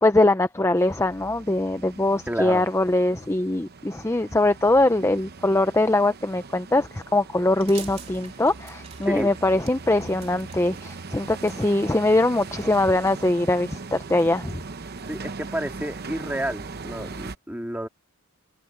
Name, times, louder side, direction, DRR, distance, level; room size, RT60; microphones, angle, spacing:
voice 1, 0.0-14.6, left 2 dB, 10° left, 0.6 m, -22 dB
sound 1, 0.8-17.4, right 4 dB, 45° right, 0.8 m, -40 dB
voice 2, 2.3-2.6 9.0-9.3 15.1-17.9, right 1 dB, 10° right, 2.4 m, -30 dB
sound 2, 7.5-13.3, right 6 dB, 30° right, 3.0 m, -48 dB
head